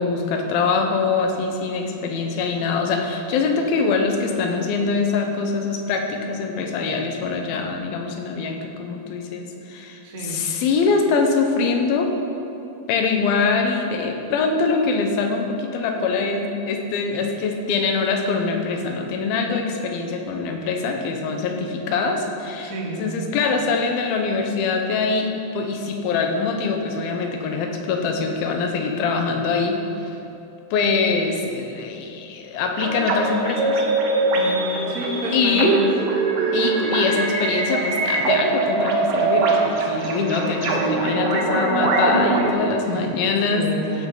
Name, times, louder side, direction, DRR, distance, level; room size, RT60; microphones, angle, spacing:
voice 1, 0.0-12.1 12.9-22.7 23.0-29.8 30.7-33.8 35.3-35.8 36.5-43.6 44.0-44.1, left 4 dB, 75° left, 3 dB, 2.6 m, -23 dB
voice 2, 10.0-10.4 22.6-23.1 34.3-35.9 39.8-40.2 42.8-44.1, right 2 dB, 90° right, -3 dB, 0.7 m, -31 dB
sound 1, 32.8-42.5, right 3 dB, 65° right, 2.2 m, -22 dB
14.5 x 9.2 x 3.9 m, 2.9 s
omnidirectional pair, 4.7 m